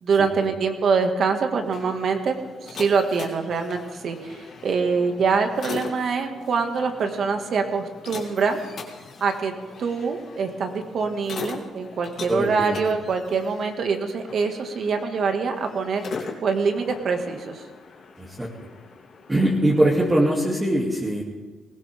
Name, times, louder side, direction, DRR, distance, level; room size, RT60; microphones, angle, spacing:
voice 1, 0.0-2.4 2.6-8.6 9.2-9.5 9.8-16.1 16.4-17.6, right 5 dB, 60° right, 5 dB, 1.9 m, -24 dB
sound 1, 1.5-20.0, left 5 dB, 60° left, 2.9 m, -40 dB
voice 2, 12.3-12.8 18.2-18.5 19.3-21.2, right 1 dB, 15° right, -4 dB, 2.4 m, -22 dB
20.0 x 17.0 x 3.6 m, 1.3 s
cardioid pair, 90°, 0 cm